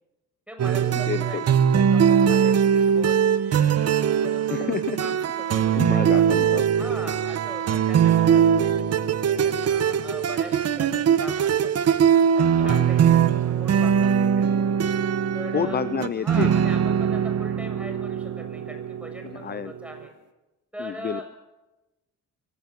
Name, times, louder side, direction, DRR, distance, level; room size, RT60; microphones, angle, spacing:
voice 1, 0.5-3.7 4.1-6.2 6.8-11.7 12.3-14.5 15.3-15.8 16.2-20.1 20.7-21.3, equal, 5° right, 4 dB, 6.9 m, -41 dB
sound 1, 0.6-20.0, right 8 dB, 55° right, 1.2 m, -21 dB
voice 2, 1.1-1.4 4.5-5.0 5.7-6.7 12.5-12.9 15.5-16.5 19.2-19.7 20.8-21.3, left 8 dB, 35° left, 15 dB, 0.6 m, -29 dB
24.0 x 17.0 x 7.5 m, 1.0 s
cardioid pair, 90°, 30 cm